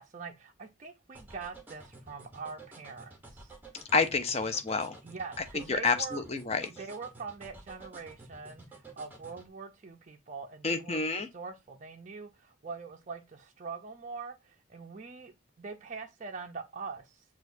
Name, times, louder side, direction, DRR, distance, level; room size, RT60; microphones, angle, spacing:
voice 1, 0.0-3.5 5.0-6.2 6.7-17.2, right 4 dB, 35° right, 0.4 m, -43 dB
sound 1, 1.1-9.5, right 3 dB, 10° right, 0.8 m, -51 dB
voice 2, 3.9-5.0 5.7-6.7 10.6-11.3, left 4 dB, 30° left, 0.5 m, -28 dB
6.1 x 2.3 x 2.6 m
head